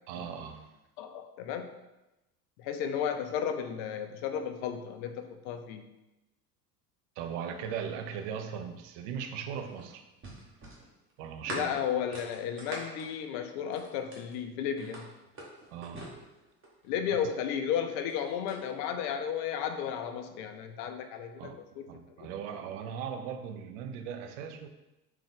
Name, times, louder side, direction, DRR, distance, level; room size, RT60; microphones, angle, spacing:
voice 1, 0.1-0.7 7.2-10.0 11.2-11.8 15.7-16.1 17.1-17.2 21.4-21.6 21.9-24.7, right 7 dB, 50° right, 7 dB, 0.5 m, -38 dB
voice 2, 1.0-1.7 2.6-5.8 11.5-15.1 16.8-21.9 22.2-22.3, left 8 dB, 40° left, 7 dB, 0.4 m, -33 dB
sound 1, 9.1-14.4 14.8-16.9 17.8-18.6, right 1 dB, 25° right, 1.1 m, -44 dB
3.6 x 3.0 x 3.5 m, 0.98 s
figure-of-eight pair, 70°, 49 cm